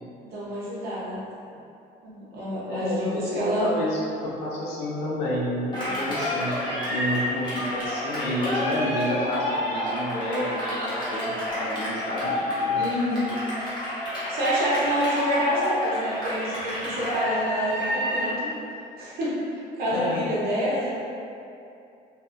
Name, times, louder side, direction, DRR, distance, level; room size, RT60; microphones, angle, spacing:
voice 1, 0.2-1.2 2.0-3.7 12.8-13.4 14.0-18.3 19.0-20.9, equal, 65° right, -8 dB, 0.9 m, -27 dB
voice 2, 2.6-12.8 19.9-20.2, left 1 dB, 90° left, -6 dB, 0.7 m, -30 dB
Cheering, 5.7-18.4, left 1 dB, 25° left, 1.1 m, -29 dB
2.7 x 2.4 x 2.4 m, 2.6 s
cardioid pair, 110°, 17 cm